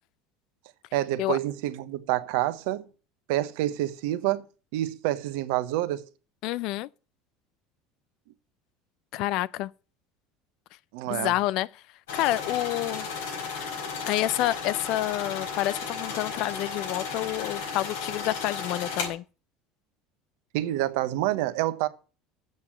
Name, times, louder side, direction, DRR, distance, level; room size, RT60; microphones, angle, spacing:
voice 1, 0.9-2.9 3.3-4.4 4.7-6.1 10.9-11.3 20.5-21.9, right 15 dB, 75° right, 0.9 m, -27 dB
voice 2, 6.4-6.9 9.1-9.7 11.1-11.7 12.2-13.1 14.1-19.2, left 16 dB, 65° left, 0.5 m, -28 dB
sound 1, 12.1-19.1, left 5 dB, 85° left, 4.5 m, -34 dB
8.0 x 7.1 x 8.5 m
hypercardioid pair, 85°, 0 cm